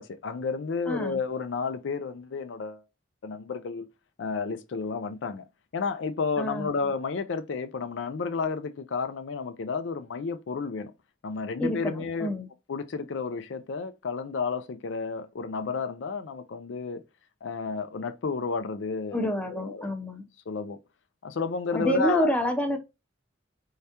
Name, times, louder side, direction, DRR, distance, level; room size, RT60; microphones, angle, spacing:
voice 1, 0.0-2.8 3.2-3.9 4.2-5.4 5.7-10.9 11.2-12.3 12.7-17.0 17.4-19.9 20.5-20.8 21.2-22.3, left 4 dB, 70° left, 0.4 m, -31 dB
voice 2, 0.9-1.2 6.4-6.7 11.6-12.5 19.1-20.2 21.7-22.8, equal, 5° left, 0.6 m, -28 dB
4.6 x 3.3 x 2.8 m
head